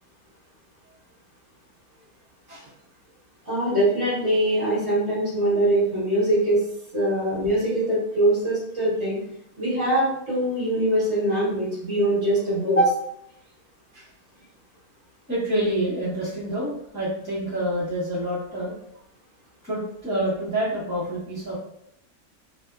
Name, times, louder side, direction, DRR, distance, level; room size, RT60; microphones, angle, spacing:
voice 1, 3.4-6.6 6.9-9.2 9.6-13.0, right 1 dB, 50° right, -8 dB, 1.5 m, -22 dB
voice 2, 15.3-18.7 19.6-21.6, right 1 dB, 10° left, -12 dB, 1.4 m, -27 dB
3.4 x 2.6 x 2.3 m, 0.73 s
omnidirectional pair, 1.6 m